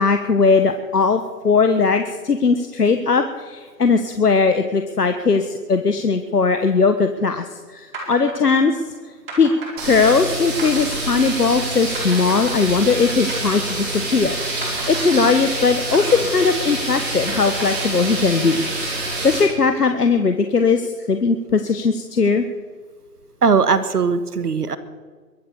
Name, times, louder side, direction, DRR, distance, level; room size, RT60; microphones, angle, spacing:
voice 1, 0.0-8.8 9.4-9.5 9.8-18.7 19.2-22.4, left 4 dB, 70° left, 8 dB, 1.4 m, -19 dB
sound 1, 7.9-14.3 14.6-18.5, right 2 dB, 35° right, 4.7 m, -35 dB
sound 2, 9.8-19.4, right 2 dB, 15° right, 3.4 m, -26 dB
voice 2, 23.4-24.8, right 5 dB, 65° right, 13 dB, 1.5 m, -19 dB
22.5 x 8.7 x 6.9 m, 1.5 s
figure-of-eight pair, 155°, 49 cm